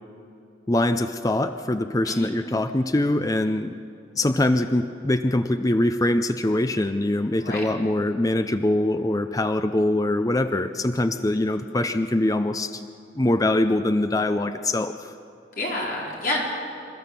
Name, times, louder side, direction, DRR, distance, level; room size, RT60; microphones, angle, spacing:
voice 1, 0.7-3.8 4.2-12.9 13.2-15.1, left 1 dB, 20° left, 9 dB, 0.5 m, -23 dB
voice 2, 15.5-16.4, left 1 dB, 50° left, -3 dB, 4.6 m, -28 dB
27.5 x 14.5 x 6.8 m, 2.5 s
head